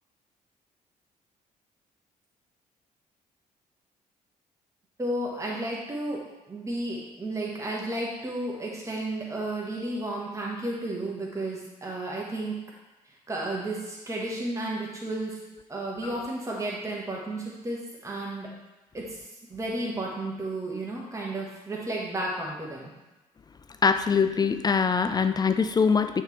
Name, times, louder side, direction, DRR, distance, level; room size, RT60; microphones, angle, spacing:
voice 1, 5.0-6.2 6.5-12.6 13.3-15.4 15.7-18.5 18.9-19.2 19.5-22.9, right 1 dB, 15° right, -3 dB, 1.4 m, -32 dB
voice 2, 23.8-26.2, left 5 dB, 20° left, 9 dB, 0.3 m, -23 dB
8.7 x 3.6 x 3.2 m, 1.1 s
figure-of-eight pair, 45°, 20 cm